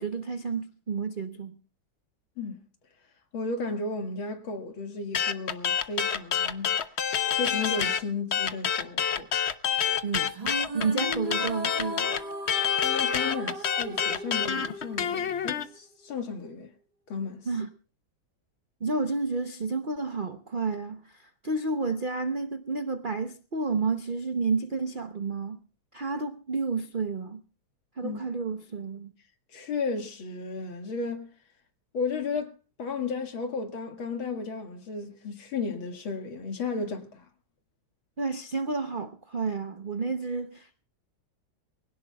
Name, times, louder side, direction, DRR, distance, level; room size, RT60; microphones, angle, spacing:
voice 1, 0.0-1.5 10.0-10.3 10.7-12.1 17.5-17.7 18.8-21.0 21.4-25.6 25.9-27.4 28.0-29.1 38.2-40.8, right 4 dB, 65° right, 0.5 m, -30 dB
voice 2, 3.3-6.7 7.4-9.3 12.7-16.7 17.1-17.5 28.0-28.2 29.5-31.3 31.9-32.5 32.8-37.3, left 4 dB, 85° left, 2.7 m, -34 dB
sound 1, 5.1-8.0 8.3-15.6, left 8 dB, 55° left, 0.7 m, -27 dB
sound 2, 10.3-15.8, equal, 25° right, 1.1 m, -37 dB
24.0 x 17.0 x 2.3 m
omnidirectional pair, 2.2 m